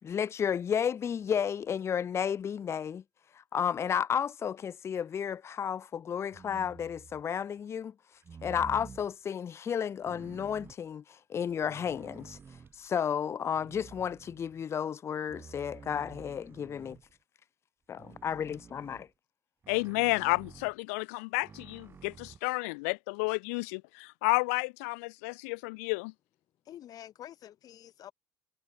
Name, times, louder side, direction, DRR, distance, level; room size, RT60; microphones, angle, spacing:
voice 1, 0.0-3.0 3.5-7.9 8.4-12.4 12.8-17.0 17.9-19.1, left 8 dB, 35° left, 0.6 m, -32 dB
sound 1, 6.3-7.3 8.2-9.1 10.0-10.8 11.5-12.9 13.5-14.7 15.3-17.2 18.0-19.1 19.6-20.8 21.4-22.4, right 6 dB, 30° right, 1.8 m, -50 dB
voice 2, 19.7-26.1, left 29 dB, 85° left, 0.4 m, -31 dB
voice 3, 26.6-28.1, left 11 dB, 55° left, 3.0 m, -48 dB
supercardioid pair, 90°, 8 cm